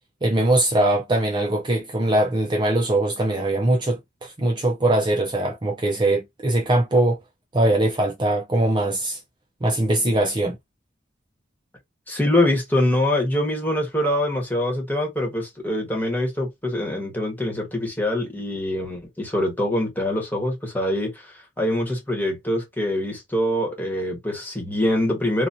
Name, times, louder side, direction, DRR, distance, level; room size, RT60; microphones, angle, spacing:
voice 1, 0.2-7.2 7.5-9.2 9.6-10.6, right 1 dB, 25° right, 0.6 m, -21 dB
voice 2, 12.1-25.5, left 1 dB, 10° left, 1.4 m, -24 dB
4.0 x 2.4 x 2.7 m
head